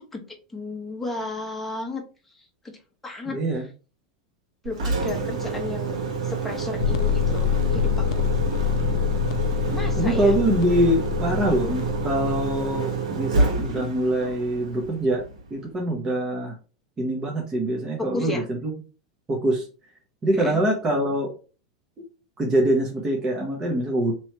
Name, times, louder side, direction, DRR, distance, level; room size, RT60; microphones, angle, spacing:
voice 1, 0.0-2.0 2.3-2.7 3.0-3.4 4.6-6.0 6.2-8.2 9.7-10.3 18.0-18.5 20.3-20.6, left 2 dB, 5° left, 1 dB, 1.0 m, -33 dB
voice 2, 3.3-3.7 10.0-15.2 15.5-16.6 17.0-18.7 19.3-19.6 20.2-21.3 22.4-24.1, right 1 dB, 20° right, -1 dB, 0.9 m, -24 dB
Engine, 4.6-15.6, right 4 dB, 85° right, 1.4 m, -28 dB
sound 1, 6.8-12.7, left 10 dB, 75° left, 0.4 m, -26 dB
3.1 x 3.0 x 4.3 m, 0.34 s
supercardioid pair, 145°, 3 cm